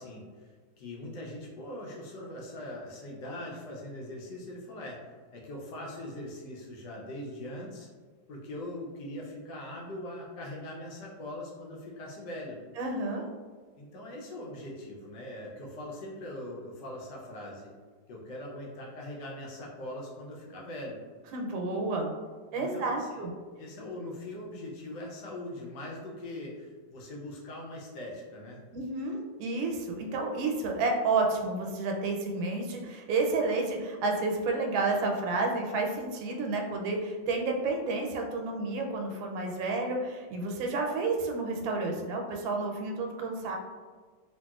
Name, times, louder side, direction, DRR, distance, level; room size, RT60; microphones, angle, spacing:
voice 1, 0.0-7.9 8.3-12.6 13.8-17.7 18.1-21.0 22.2-28.6, left 1 dB, 70° left, -3 dB, 1.2 m, -41 dB
voice 2, 12.8-13.2 21.3-22.1 22.5-23.3 28.7-43.6, right 3 dB, 90° right, 2 dB, 1.3 m, -30 dB
2.9 x 2.8 x 2.3 m, 1.5 s
omnidirectional pair, 2.1 m